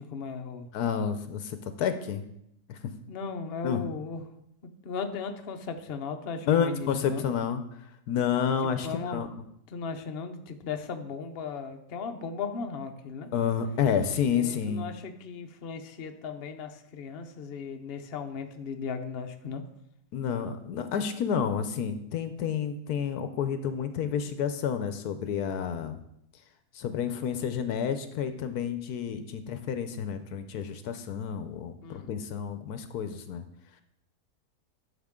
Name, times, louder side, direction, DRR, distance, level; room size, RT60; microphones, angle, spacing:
voice 1, 0.0-0.7 3.1-4.2 4.6-7.2 8.8-9.3 9.7-13.3 14.3-19.6 31.8-32.1, left 5 dB, 50° left, 5 dB, 0.7 m, -37 dB
voice 2, 0.7-2.2 2.7-2.9 3.6-3.8 6.5-7.6 8.1-9.3 13.3-14.9 20.1-26.0 26.7-33.4, left 7 dB, 70° left, 9 dB, 1.1 m, -30 dB
12.0 x 6.2 x 3.6 m, 0.77 s
omnidirectional pair, 1.8 m